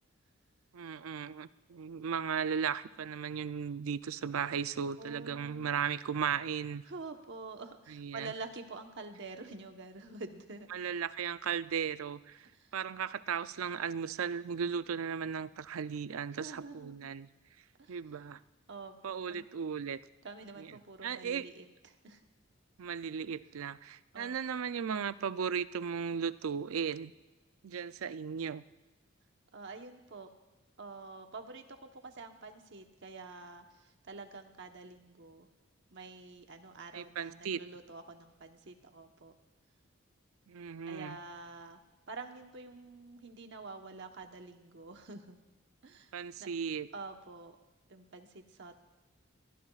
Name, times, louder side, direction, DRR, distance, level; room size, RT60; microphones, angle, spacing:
voice 1, 0.7-6.8 7.9-8.3 10.7-12.5 12.7-17.3 17.9-18.4 19.0-20.0 20.6-20.7 21.0-21.5 22.8-27.1 27.6-28.6 36.9-37.6 40.5-41.2 46.1-46.9, right 7 dB, 85° right, 14 dB, 0.5 m, -36 dB
voice 2, 5.0-5.7 6.9-10.7 12.5-12.7 16.3-16.9 17.8-18.0 18.7-19.4 20.2-22.2 24.1-24.4 29.5-30.3 30.8-35.5 35.9-39.3 40.9-41.8 42.1-45.4 45.8-46.1 46.4-46.5 46.9-47.6 47.9-48.8, right 3 dB, 60° right, 5 dB, 1.1 m, -47 dB
22.5 x 15.0 x 2.4 m, 1.1 s
head